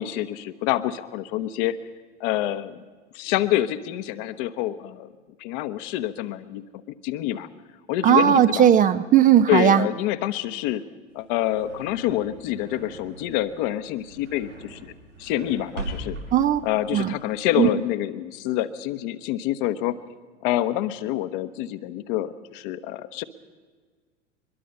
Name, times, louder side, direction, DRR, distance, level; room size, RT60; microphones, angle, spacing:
voice 1, 0.0-1.8 2.2-2.8 3.1-5.1 5.4-6.6 7.0-7.5 7.9-8.7 9.5-10.8 11.1-14.9 15.2-16.2 16.6-20.0 20.4-23.2, left 13 dB, 45° left, 11 dB, 1.1 m, -27 dB
voice 2, 8.0-9.8 16.3-16.6 16.9-17.1 17.6-17.7, right 10 dB, 25° right, 12 dB, 0.6 m, -17 dB
sound 1, 11.1-17.5, right 2 dB, 85° right, 7.5 m, -40 dB
23.0 x 21.5 x 5.5 m, 1.5 s
figure-of-eight pair, 80°, 35 cm